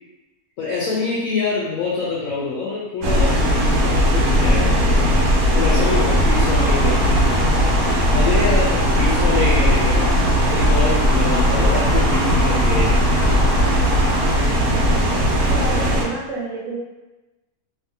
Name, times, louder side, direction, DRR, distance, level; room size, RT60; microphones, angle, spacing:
voice 1, 0.6-4.9 5.5-7.4 8.1-10.1 10.4-12.9, left 3 dB, 75° left, -5 dB, 1.0 m, -25 dB
sound 1, 3.0-16.0, equal, 90° right, 1.1 m, -17 dB
sound 2, 5.6-14.4, left 1 dB, 50° left, 0.7 m, -30 dB
voice 2, 14.7-16.8, right 3 dB, 70° right, -4 dB, 0.9 m, -31 dB
2.8 x 2.5 x 2.7 m, 1.1 s
omnidirectional pair, 1.5 m